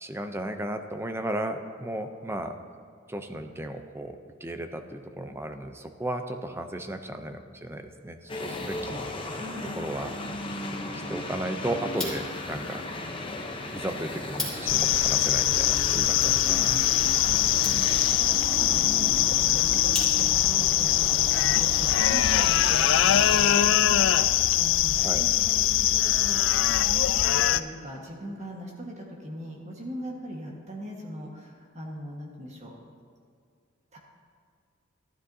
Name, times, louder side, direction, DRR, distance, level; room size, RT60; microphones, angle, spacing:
voice 1, 0.0-2.6 3.1-9.0 9.8-10.1 11.1-12.8 13.7-16.8 25.0-25.2, right 1 dB, 10° right, 7 dB, 0.5 m, -34 dB
sound 1, 8.3-23.7, left 2 dB, 25° left, 0.8 m, -36 dB
voice 2, 9.3-9.8 17.2-32.7 33.9-34.0, equal, 35° right, -2 dB, 1.5 m, -40 dB
sound 2, 11.8-20.6, left 2 dB, 5° left, 2.7 m, -42 dB
sound 3, 14.7-27.6, left 13 dB, 65° left, 0.3 m, -22 dB
13.0 x 12.5 x 2.7 m, 2.2 s
head